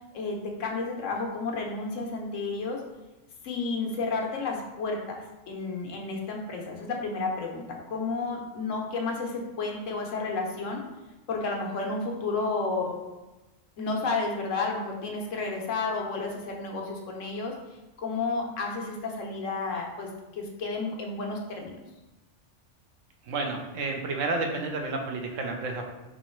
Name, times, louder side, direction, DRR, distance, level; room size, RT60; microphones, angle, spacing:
voice 1, 0.1-2.8 3.4-10.8 11.3-13.0 13.8-17.5 18.0-21.8, left 3 dB, 80° left, 1 dB, 1.2 m, -31 dB
voice 2, 23.3-25.8, right 3 dB, 90° right, 2 dB, 1.1 m, -30 dB
3.8 x 3.1 x 4.4 m, 1.0 s
omnidirectional pair, 1.3 m